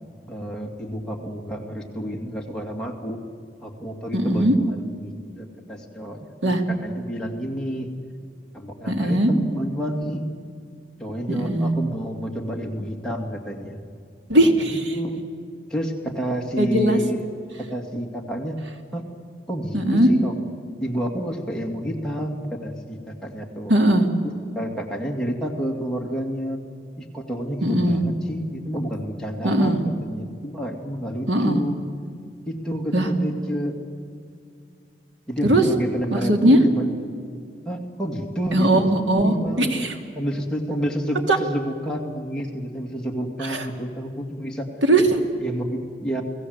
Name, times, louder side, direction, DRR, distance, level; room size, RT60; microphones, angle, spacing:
voice 1, 0.3-3.2 3.6-7.9 8.5-10.2 11.0-13.8 14.9-15.2 15.7-17.3 17.7-18.6 18.9-19.0 19.5-20.3 20.8-23.7 24.6-26.6 27.0-31.8 32.4-33.7 35.3-36.9 37.7-38.9 39.2-39.9 40.1-44.7 45.4-46.2, equal, 5° left, -1 dB, 2.4 m, -29 dB
voice 2, 4.1-4.5 6.4-6.6 8.9-9.3 11.3-11.7 14.3-14.8 16.6-17.0 19.7-20.1 23.7-24.1 27.6-28.0 29.4-29.8 31.3-31.6 32.9-33.1 35.4-35.6 36.1-36.6 38.5-39.9 41.3-41.4 43.4-43.6 44.8-45.2, right 1 dB, 85° right, 5 dB, 2.5 m, -19 dB
30.0 x 18.5 x 8.0 m, 2.4 s
head